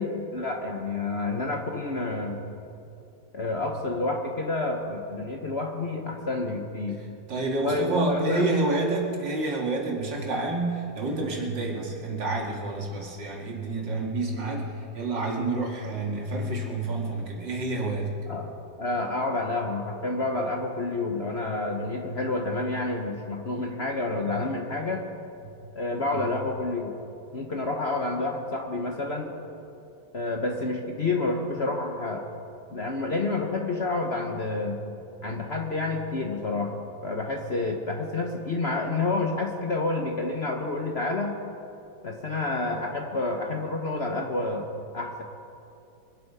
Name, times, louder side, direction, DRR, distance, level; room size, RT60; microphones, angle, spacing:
voice 1, 0.0-2.4 3.3-7.0 7.6-8.5 18.3-18.5 18.8-25.1 25.7-26.9 27.3-29.3 30.1-32.2 32.7-34.8 35.2-36.7 37.0-41.4 42.0-45.2, left 2 dB, 45° left, 2 dB, 1.0 m, -29 dB
voice 2, 7.0-18.1 26.1-26.3, right 2 dB, 70° right, -1 dB, 2.8 m, -29 dB
23.5 x 8.6 x 5.6 m, 2.7 s
omnidirectional pair, 2.1 m